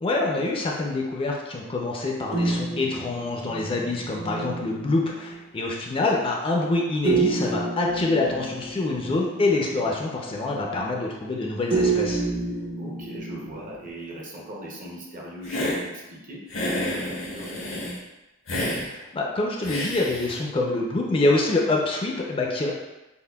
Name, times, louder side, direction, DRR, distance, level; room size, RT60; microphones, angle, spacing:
voice 1, 0.0-12.2 18.9-22.7, left 2 dB, 25° left, -1 dB, 0.4 m, -26 dB
sound 1, 2.3-5.4 7.0-10.0 11.7-13.9, right 3 dB, 75° right, 0.9 m, -29 dB
voice 2, 12.8-17.9, right 1 dB, 40° right, -1 dB, 0.6 m, -39 dB
Hiss, 15.4-15.8 16.5-18.0 18.5-18.8 19.6-20.3, left 1 dB, 80° left, 0.8 m, -29 dB
5.3 x 2.1 x 2.2 m, 1.0 s
head